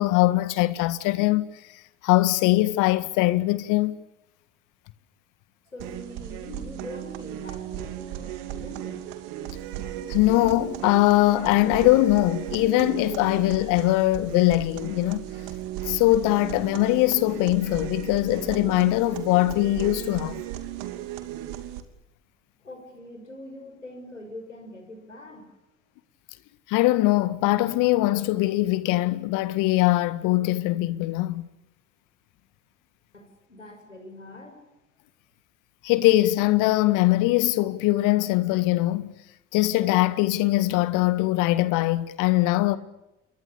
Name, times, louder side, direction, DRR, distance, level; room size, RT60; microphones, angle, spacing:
voice 1, 0.0-1.4 2.0-4.0 10.1-15.2 15.8-20.4 26.7-31.5 35.8-39.1 39.5-42.8, left 17 dB, 55° left, 1.7 m, -22 dB
voice 2, 5.7-9.1 22.6-25.5 33.1-34.6, left 1 dB, 90° left, 5.7 m, -43 dB
sound 1, 5.8-21.8, right 12 dB, 60° right, 2.9 m, -36 dB
29.5 x 23.0 x 7.0 m
figure-of-eight pair, 60°, 37 cm